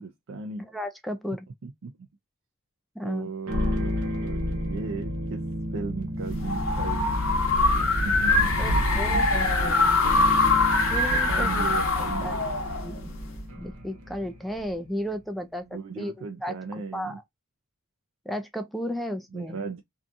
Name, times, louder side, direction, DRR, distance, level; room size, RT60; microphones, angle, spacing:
voice 1, 0.0-0.7 1.6-2.1 3.0-5.5 5.7-7.1 8.0-9.3 10.5-10.6 11.1-12.5 15.7-17.2 19.3-19.8, right 4 dB, 60° right, 0.4 m, -36 dB
voice 2, 0.6-1.5 3.0-3.3 8.6-10.0 10.9-11.6 12.2-12.3 12.8-13.1 13.6-16.1 16.4-16.6 16.9-17.2 18.3-19.6, equal, ahead, 0.4 m, -34 dB
sound 1, 3.5-14.8, left 1 dB, 80° right, 0.8 m, -32 dB
sound 2, 6.2-13.4, left 2 dB, 65° left, 0.8 m, -23 dB
2.7 x 2.3 x 2.5 m
head